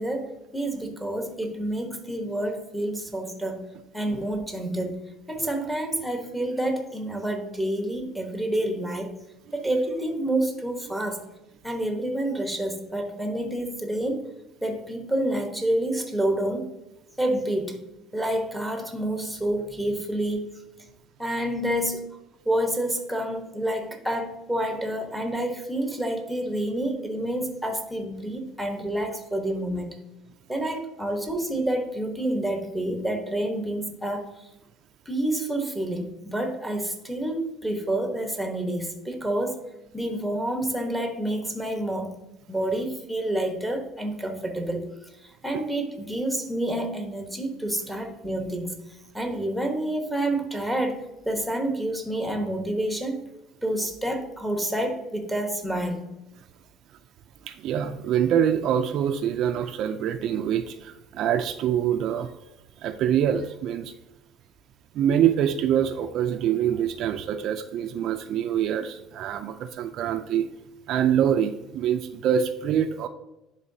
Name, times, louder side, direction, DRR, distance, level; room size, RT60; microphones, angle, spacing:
voice 1, 0.0-3.6 3.9-5.0 5.3-9.1 9.5-11.2 11.6-14.3 14.6-16.7 17.2-17.8 18.1-20.6 21.2-22.1 22.4-30.0 30.5-34.3 35.1-39.6 39.9-42.1 42.5-44.9 45.2-48.8 49.1-53.2 53.6-56.1, right 1 dB, ahead, 4 dB, 1.1 m, -28 dB
voice 2, 57.5-62.3 62.8-63.9 64.9-70.5 70.9-73.1, right 9 dB, 55° right, 8 dB, 0.4 m, -25 dB
10.5 x 3.8 x 2.7 m, 0.95 s
cardioid pair, 135°, 0 cm